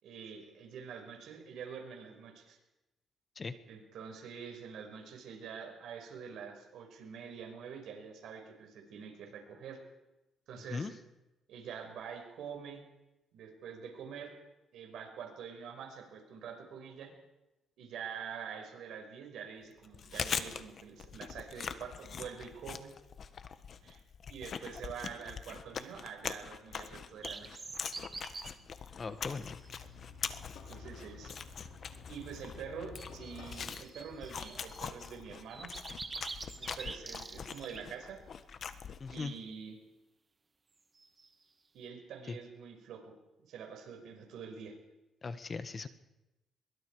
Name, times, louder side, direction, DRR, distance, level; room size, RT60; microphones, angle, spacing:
voice 1, 0.0-2.6 3.7-9.8 10.5-10.9 11.5-12.8 13.3-14.3 14.7-17.1 17.8-22.9 23.8-24.0 24.3-27.6 30.7-31.4 32.1-35.7 36.6-38.2 39.1-39.8 41.7-43.1 43.5-44.8, right 7 dB, 80° right, 3 dB, 5.7 m, -46 dB
Chewing mastication, 19.8-39.3, left 7 dB, 55° left, 1.4 m, -43 dB
sound 1, 27.2-28.5 29.3-29.7 33.0-35.1 35.5-37.8 40.9-41.3, right 3 dB, 30° right, 1.9 m, -46 dB
sound 2, 28.6-33.7, left 4 dB, 75° left, 5.9 m, -51 dB
voice 2, 29.0-29.6 39.0-39.3 42.3-42.4 45.2-45.9, left 4 dB, 35° left, 11 dB, 1.5 m, -39 dB
23.5 x 22.5 x 5.0 m, 0.98 s
cardioid pair, 90°, 0 cm